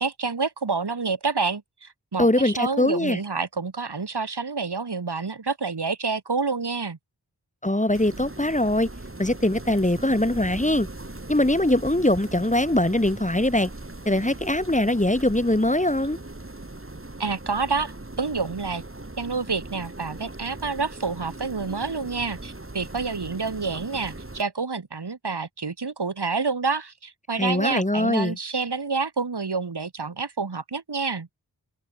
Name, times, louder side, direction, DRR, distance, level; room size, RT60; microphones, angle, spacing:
voice 1, 0.0-7.0 17.2-18.8 19.2-31.3, right 4 dB, 75° right, 4.4 m, -28 dB
voice 2, 2.2-3.2 7.6-8.9 9.2-10.9 11.3-13.7 14.0-16.2 27.3-28.4, left 1 dB, 20° left, 2.9 m, -22 dB
sound 1, 7.9-24.4, right 2 dB, 30° right, 5.8 m, -40 dB
wide cardioid pair, 45°, 40 cm